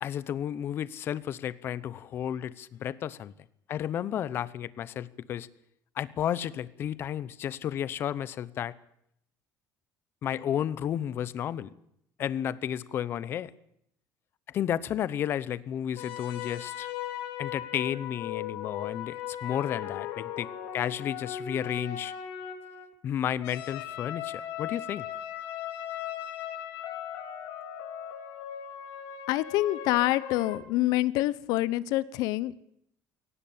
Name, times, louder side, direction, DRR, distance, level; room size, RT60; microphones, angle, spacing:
voice 1, 0.0-3.3 3.7-5.5 6.0-8.7 10.2-11.7 12.2-13.5 14.5-16.9 17.4-22.1 23.0-25.1, left 10 dB, 35° left, 0.8 m, -32 dB
sound 1, 16.0-22.9 23.4-30.6, left 10 dB, 90° left, 3.0 m, -38 dB
voice 2, 29.3-32.6, left 16 dB, 70° left, 1.0 m, -26 dB
21.5 x 18.5 x 8.7 m
cardioid pair, 180°, 7 cm